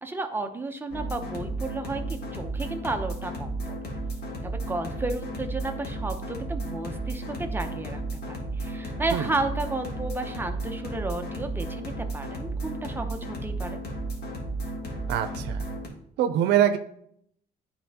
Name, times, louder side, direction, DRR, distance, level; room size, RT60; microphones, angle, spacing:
voice 1, 0.0-3.8 4.4-13.8, right 2 dB, 10° right, 5 dB, 0.8 m, -33 dB
sound 1, 0.9-15.9, right 2 dB, 70° left, 1.8 m, -33 dB
voice 2, 15.1-15.6 16.2-16.8, right 10 dB, 85° right, 8 dB, 0.6 m, -23 dB
10.0 x 4.1 x 2.9 m, 0.68 s
cardioid pair, 110°, 17 cm